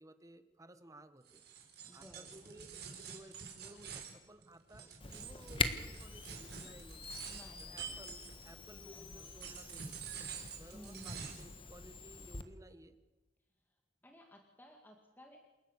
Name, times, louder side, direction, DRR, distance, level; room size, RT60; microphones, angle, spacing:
voice 1, 0.0-7.3 7.6-10.0 10.6-13.0, right 1 dB, 20° right, 11 dB, 1.2 m, -57 dB
sound 1, 1.3-8.7 9.2-11.5, right 6 dB, 65° right, 4.3 m, -48 dB
voice 2, 1.8-2.5 7.3-8.0 8.9-9.6 10.7-11.4 13.6-13.8 14.0-15.4, equal, 10° left, 2 dB, 2.2 m, -57 dB
Camera, 5.0-12.4, left 4 dB, 30° left, 1.4 m, -43 dB
28.5 x 11.5 x 8.2 m, 1.2 s
head